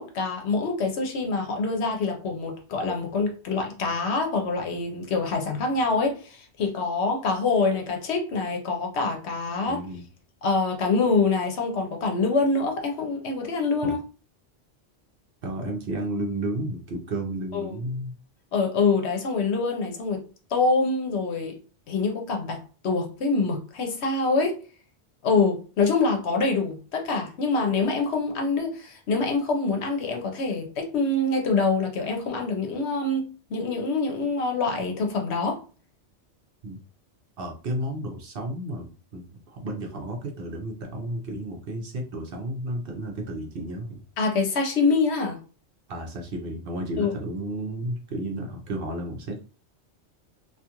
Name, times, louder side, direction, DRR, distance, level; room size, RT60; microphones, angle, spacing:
voice 1, 0.0-9.8 10.4-14.0 17.5-17.8 18.5-20.2 20.5-21.6 21.9-24.6 25.2-35.6 44.2-45.4 47.0-47.1, left 3 dB, 70° left, 1.0 m, -25 dB
voice 2, 9.7-10.0 13.8-14.0 15.4-18.2 30.5-30.6 36.6-36.8 37.4-44.0 45.9-49.4, right 1 dB, 60° right, 0.8 m, -32 dB
2.4 x 2.4 x 2.9 m
omnidirectional pair, 1.2 m